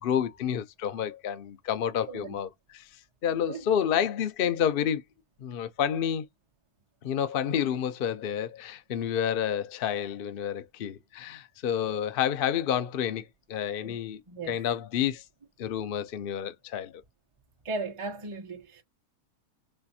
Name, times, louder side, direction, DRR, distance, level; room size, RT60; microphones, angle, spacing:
voice 1, 0.0-2.9 3.2-5.0 5.4-6.3 7.0-14.2 14.5-15.2 15.6-17.0, left 9 dB, 65° left, 0.5 m, -29 dB
voice 2, 17.6-18.8, right 3 dB, 25° right, 0.9 m, -36 dB
5.4 x 2.5 x 2.7 m
omnidirectional pair, 1.7 m